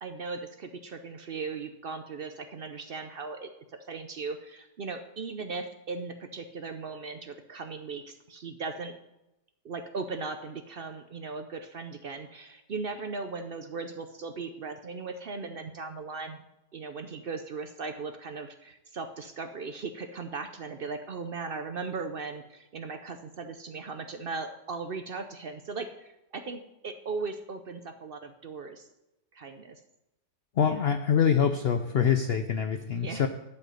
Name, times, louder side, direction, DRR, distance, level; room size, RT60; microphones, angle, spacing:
voice 1, 0.0-3.5 3.9-8.9 9.6-16.4 16.7-28.9 29.3-29.8 30.6-30.8 33.0-33.2, right 4 dB, 70° right, 8 dB, 0.5 m, -38 dB
voice 2, 30.6-33.3, left 7 dB, 75° left, 8 dB, 0.5 m, -25 dB
12.0 x 5.7 x 7.8 m, 0.94 s
omnidirectional pair, 1.8 m